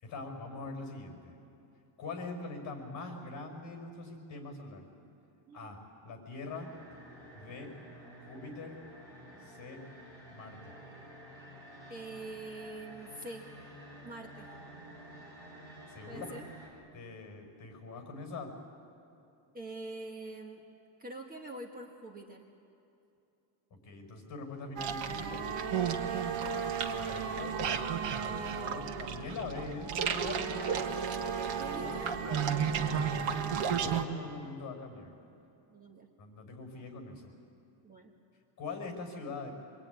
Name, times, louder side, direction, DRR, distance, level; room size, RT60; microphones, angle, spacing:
voice 1, 0.0-1.4 2.0-4.9 5.5-6.7 7.3-7.7 8.2-8.8 9.4-9.8 10.3-10.7 15.9-16.3 16.9-18.5 23.8-25.5 26.9-27.6 28.2-30.7 31.7-35.1 36.2-37.3 38.6-39.5, left 3 dB, 40° left, 3 dB, 5.7 m, -43 dB
sound 1, 6.5-16.7, right 1 dB, 5° left, 7.8 m, -51 dB
voice 2, 11.9-13.5 14.0-14.5 16.1-16.5 19.5-20.7 21.0-22.5 26.1-26.3 28.2-28.9 31.6-32.1 35.7-36.1 37.8-38.1, right 2 dB, 20° right, 0 dB, 1.5 m, -45 dB
sound 2, 24.8-34.0, right 7 dB, 65° right, 1.7 m, -33 dB
26.0 x 22.5 x 9.7 m, 2.8 s
cardioid pair, 180°, 47 cm